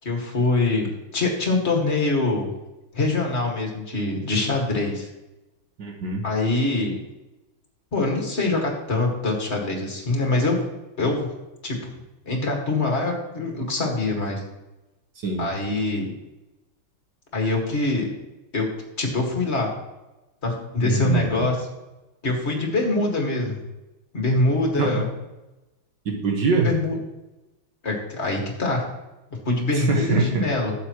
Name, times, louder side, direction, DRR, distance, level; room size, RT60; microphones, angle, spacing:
voice 1, 0.0-2.5 2.9-5.1 6.2-7.0 7.9-10.6 11.0-11.3 11.6-11.8 12.3-14.4 15.4-16.1 17.3-18.1 18.5-18.7 19.0-19.7 20.4-21.6 22.2-23.6 24.1-25.0 26.6-26.9 27.8-28.8 29.5-30.7, left 2 dB, 35° left, 1 dB, 2.0 m, -24 dB
voice 2, 5.8-6.2 15.2-15.5 20.8-21.5 24.8-24.9 26.0-26.7 29.7-30.5, right 4 dB, 60° right, 1 dB, 1.7 m, -23 dB
12.0 x 8.3 x 3.0 m, 1.0 s
omnidirectional pair, 2.3 m